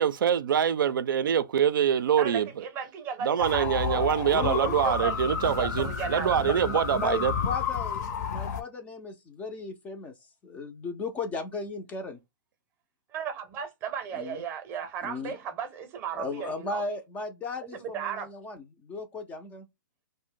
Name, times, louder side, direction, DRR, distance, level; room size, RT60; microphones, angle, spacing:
voice 1, 0.0-2.5 3.2-7.3, right 8 dB, 75° right, 0.4 m, -25 dB
voice 2, 2.2-4.1 4.4-5.2 5.6-6.3 13.1-16.8 17.7-18.3, right 7 dB, 20° right, 0.6 m, -35 dB
sound 1, 3.4-8.6, left 7 dB, 50° left, 0.6 m, -31 dB
voice 3, 4.3-4.8 6.4-10.1 10.4-12.2 14.1-14.4 15.0-15.4 16.1-19.7, left 3 dB, 15° left, 0.4 m, -36 dB
2.6 x 2.1 x 3.6 m
hypercardioid pair, 150°, 11 cm